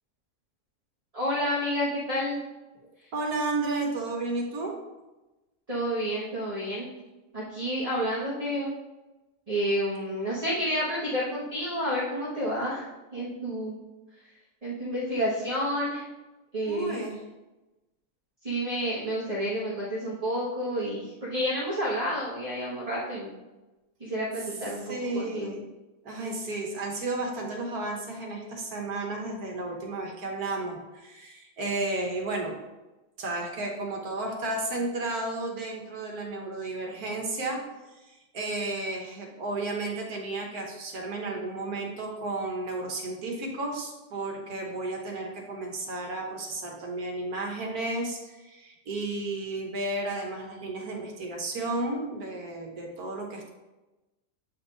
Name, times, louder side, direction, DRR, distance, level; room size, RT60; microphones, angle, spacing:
voice 1, 1.1-2.4 3.0-3.1 5.7-6.8 7.3-8.7 9.5-12.9 13.1-13.8 14.2-14.3 14.6-16.0 16.5-17.0 18.4-23.3 24.0-25.5, equal, 25° right, -7 dB, 1.3 m, -30 dB
voice 2, 3.1-4.7 16.7-17.2 24.8-25.6 26.0-32.6 33.2-37.6 37.9-53.5, right 2 dB, 65° right, 1 dB, 1.6 m, -33 dB
7.9 x 4.4 x 3.9 m, 1.1 s
omnidirectional pair, 1.7 m